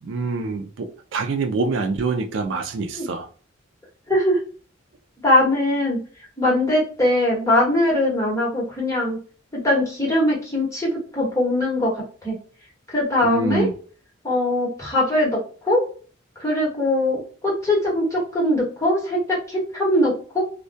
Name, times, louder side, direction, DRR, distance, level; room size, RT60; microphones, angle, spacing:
voice 1, 0.0-3.3 13.2-13.7, right 3 dB, 65° right, 4 dB, 0.4 m, -25 dB
voice 2, 4.1-4.4 5.2-6.0 6.4-9.2 9.6-11.9 12.2-12.3 12.9-13.7 14.2-15.4 15.6-15.8 16.4-20.4, left 1 dB, 15° left, -4 dB, 1.0 m, -21 dB
2.2 x 2.2 x 2.5 m, 0.40 s
head